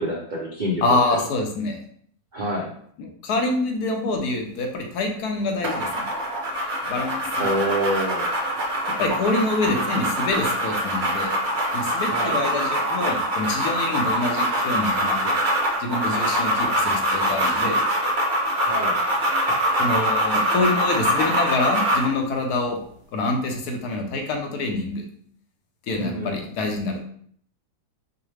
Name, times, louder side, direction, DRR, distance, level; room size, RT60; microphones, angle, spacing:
voice 1, 0.0-1.0 2.3-2.7 7.4-8.3 12.1-12.4 18.7-19.0 25.9-26.4, equal, 70° right, -4 dB, 0.4 m, -27 dB
voice 2, 0.8-1.8 3.0-6.0 6.9-7.5 9.0-11.4 11.7-15.4 15.8-17.8 19.8-22.8 23.1-25.0 25.9-27.0, left 2 dB, 75° left, 3 dB, 1.2 m, -26 dB
sound 1, 5.6-22.1, equal, 50° right, 0.9 m, -24 dB
4.7 x 2.1 x 3.2 m, 0.62 s
omnidirectional pair, 1.7 m